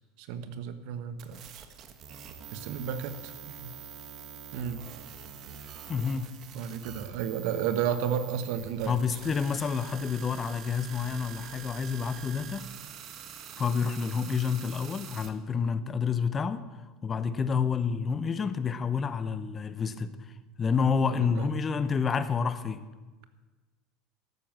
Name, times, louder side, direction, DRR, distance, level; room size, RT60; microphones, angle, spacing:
voice 1, 0.2-1.7 2.5-3.7 4.5-4.8 6.5-9.0 21.1-21.5, right 8 dB, 70° right, 1.2 m, -33 dB
sound 1, 1.2-15.3, right 8 dB, 45° right, 1.3 m, -45 dB
voice 2, 5.9-6.3 8.9-12.7 13.6-16.6 17.0-20.2 20.6-22.8, left 6 dB, 25° left, 0.8 m, -29 dB
12.5 x 9.2 x 7.5 m
supercardioid pair, 120°, 0 cm